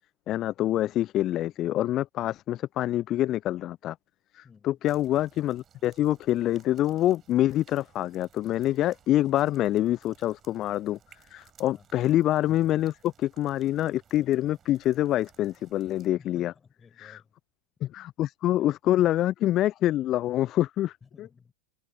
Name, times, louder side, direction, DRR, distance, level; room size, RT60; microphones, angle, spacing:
voice 1, 0.3-4.0 4.3-11.0 11.3-16.5 17.0-17.2 17.8-21.0, left 13 dB, 35° left, 0.5 m, -26 dB
voice 2, 4.4-4.8 11.7-11.9 16.2-17.3 18.6-18.7 21.0-21.5, left 5 dB, 15° left, 5.6 m, -55 dB
sound 1, 4.8-16.1, right 9 dB, 25° right, 5.5 m, -60 dB
figure-of-eight pair, 90°, 0 cm